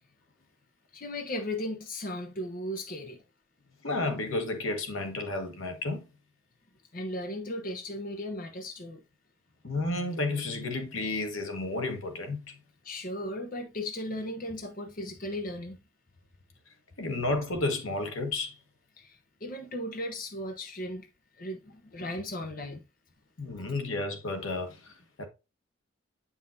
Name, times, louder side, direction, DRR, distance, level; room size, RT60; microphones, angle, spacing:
voice 1, 0.9-3.2 6.9-9.0 12.8-15.8 19.0-21.1 21.4-22.8, left 1 dB, 45° left, 0.9 m, -36 dB
voice 2, 3.8-6.1 9.6-12.6 17.0-18.6 23.4-25.3, left 2 dB, 80° left, 1.4 m, -32 dB
8.3 x 5.6 x 2.7 m
head